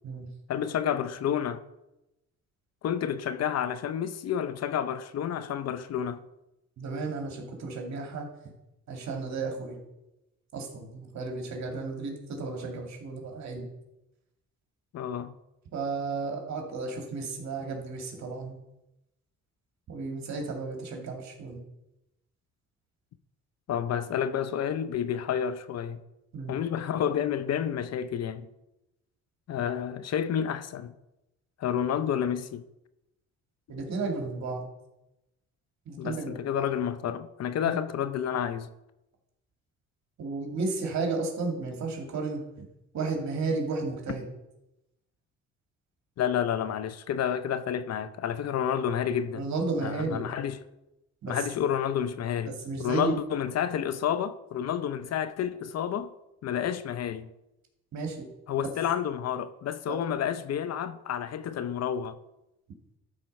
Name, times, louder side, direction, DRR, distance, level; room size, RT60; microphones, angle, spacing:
voice 1, 0.5-1.6 2.8-6.2 14.9-15.3 23.7-26.0 26.5-28.5 29.5-30.9 31.6-32.6 36.0-38.7 46.2-49.5 49.8-50.6 51.3-56.1 56.4-57.3 58.5-62.2, left 9 dB, 60° left, 0.6 m, -30 dB
voice 2, 6.8-8.3 8.9-9.8 10.5-13.7 15.7-18.5 19.9-21.6 26.3-26.6 33.7-34.7 35.9-36.7 37.6-37.8 40.2-42.4 42.9-44.3 49.3-50.3 51.2-51.4 52.4-53.2 57.9-58.3 58.6-58.7 59.9-60.0, right 3 dB, 65° right, 2.3 m, -33 dB
12.5 x 4.2 x 5.3 m
cardioid pair, 90°, 30 cm